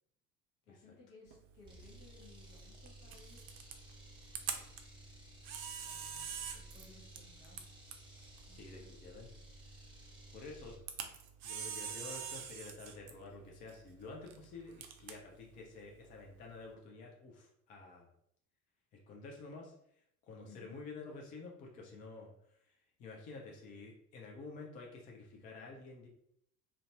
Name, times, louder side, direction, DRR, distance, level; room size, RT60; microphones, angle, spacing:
voice 1, 0.7-3.4 5.8-7.8 8.5-8.9 20.4-20.8, left 3 dB, 55° left, -2 dB, 1.1 m, -60 dB
Camera, 1.3-16.7, right 7 dB, 60° right, 0.5 m, -47 dB
sound 1, 1.6-10.8, right 1 dB, 10° right, 0.9 m, -56 dB
voice 2, 8.5-10.0 10.3-11.1 11.4-18.1 19.1-19.7 20.3-22.3 22.7-26.1, left 3 dB, 20° left, 0 dB, 0.3 m, -50 dB
2.5 x 2.2 x 2.8 m, 0.72 s
figure-of-eight pair, 65°, 48 cm